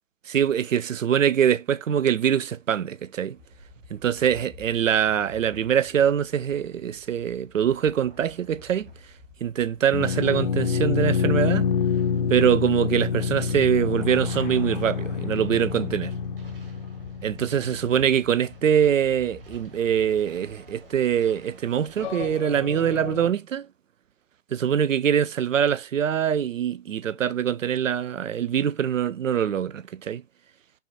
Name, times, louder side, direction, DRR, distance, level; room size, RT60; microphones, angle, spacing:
voice 1, 0.3-3.4 3.9-8.9 9.4-11.7 12.3-16.1 17.2-23.7 24.5-30.2, right 9 dB, 80° right, 0.5 m, -23 dB
sound 1, 3.3-22.4, equal, 45° right, 1.6 m, -50 dB
sound 2, 9.9-18.6 22.0-23.3, left 6 dB, 40° left, 0.6 m, -27 dB
5.5 x 2.5 x 2.6 m
figure-of-eight pair, 125°, 38 cm